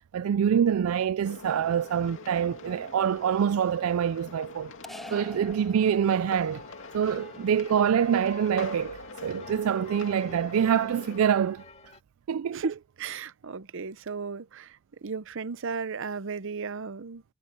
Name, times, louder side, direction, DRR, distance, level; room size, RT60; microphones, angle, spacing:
voice 1, 0.1-4.7 5.1-6.6 6.9-11.6 12.3-12.7, right 8 dB, 80° right, 0.4 m, -25 dB
sound 1, 1.3-11.3, left 3 dB, 65° left, 2.6 m, -44 dB
sound 2, 4.8-6.5, equal, ahead, 0.7 m, -45 dB
sound 3, 6.2-12.0, left 4 dB, 30° left, 1.8 m, -50 dB
voice 2, 12.5-17.2, right 5 dB, 65° right, 0.8 m, -35 dB
head